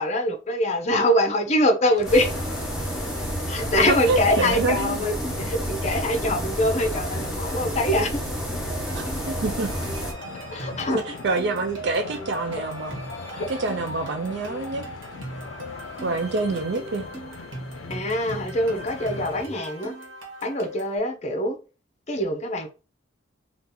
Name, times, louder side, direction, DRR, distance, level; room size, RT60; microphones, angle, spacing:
voice 1, 0.0-2.3 3.5-8.2 10.5-11.2 13.3-13.5 17.9-19.9 20.4-21.6 22.1-22.7, left 1 dB, 35° left, 0.6 m, -24 dB
sound 1, 2.0-19.5, left 4 dB, 85° left, 0.5 m, -40 dB
sound 2, 2.0-10.1, equal, 5° right, 1.0 m, -30 dB
voice 2, 3.9-4.9 8.9-9.7 11.2-13.0 13.5-14.8 16.0-17.0, right 3 dB, 60° right, 0.4 m, -26 dB
sound 3, 8.7-21.0, right 2 dB, 75° right, 1.3 m, -40 dB
2.8 x 2.4 x 3.7 m
head